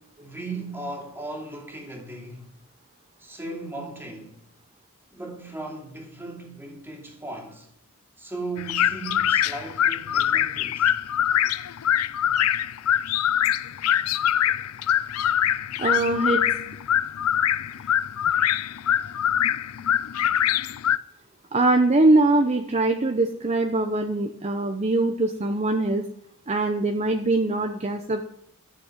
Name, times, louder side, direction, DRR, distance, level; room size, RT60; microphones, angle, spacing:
voice 1, 0.0-2.5 3.2-4.4 5.1-7.7 8.2-10.9, right 2 dB, 10° right, 2.7 m, -37 dB
sound 1, 8.6-21.0, left 10 dB, 75° left, 0.5 m, -24 dB
voice 2, 15.8-16.4 21.5-26.0 26.5-28.3, right 2 dB, 30° right, 0.8 m, -22 dB
13.5 x 6.8 x 7.4 m
head